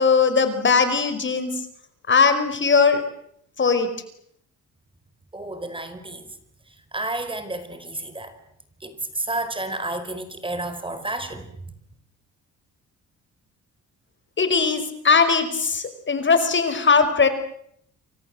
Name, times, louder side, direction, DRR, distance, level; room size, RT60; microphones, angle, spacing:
voice 1, 0.0-1.5 2.1-3.0 3.6-3.9 14.4-17.3, left 5 dB, 40° left, 10 dB, 5.1 m, -19 dB
voice 2, 5.3-6.4 6.9-8.4 8.8-11.6, right 2 dB, 15° right, 10 dB, 4.9 m, -31 dB
29.0 x 24.5 x 7.9 m, 0.70 s
cardioid pair, 90°, 30 cm